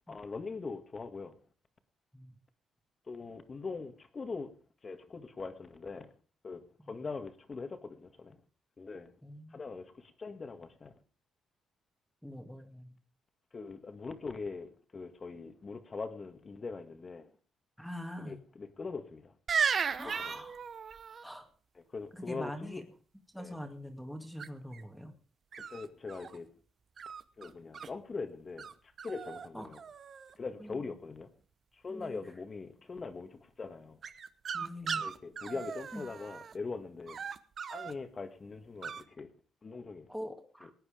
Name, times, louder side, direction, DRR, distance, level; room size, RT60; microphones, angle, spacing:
voice 1, 0.1-1.4 3.1-4.5 4.8-6.1 6.4-8.4 8.8-9.1 9.5-10.9 13.5-17.3 18.2-19.3 20.0-20.4 21.9-22.8 23.4-23.6 25.6-26.5 27.4-29.8 30.4-31.3 31.7-34.0 35.0-37.2 37.7-39.3 39.6-40.1, left 4 dB, 35° left, 1.9 m, -42 dB
voice 2, 9.2-9.6 12.2-12.9 17.8-18.4 20.0-20.6 21.2-21.5 22.1-22.8 23.3-25.1 29.5-29.7 30.6-30.9 31.9-32.3 34.5-35.0 35.5-35.6 35.9-36.0 40.1-40.7, equal, ahead, 2.1 m, -44 dB
sound 1, 19.5-21.2 24.4-24.8 25.5-26.4 27.0-27.9 28.6-28.7 29.0-29.5 29.7-30.3 34.0-36.5 37.1-37.9 38.8-39.0, right 6 dB, 50° right, 1.0 m, -36 dB
18.0 x 9.7 x 5.1 m
cardioid pair, 90°, 0 cm